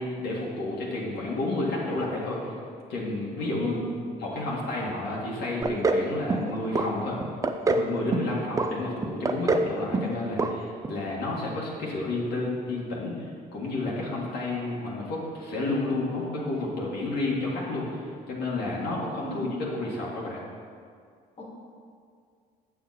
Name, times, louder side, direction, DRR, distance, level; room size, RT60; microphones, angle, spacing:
voice 1, 0.0-2.6 2.9-3.9 4.2-7.2 7.7-19.5 19.7-20.4, left 2 dB, 75° left, -5 dB, 1.9 m, -31 dB
voice 2, 3.4-4.1 19.2-19.5 21.4-21.5, equal, 35° left, -3 dB, 2.0 m, -37 dB
sound 1, 5.6-6.0 6.3-6.9 7.2-7.9 8.1-8.7 9.0-9.7 9.9-10.1 10.4-10.5 10.8-10.9, right 3 dB, 20° right, 0.5 m, -24 dB
7.8 x 7.2 x 4.2 m, 2.2 s
cardioid pair, 110°, 17 cm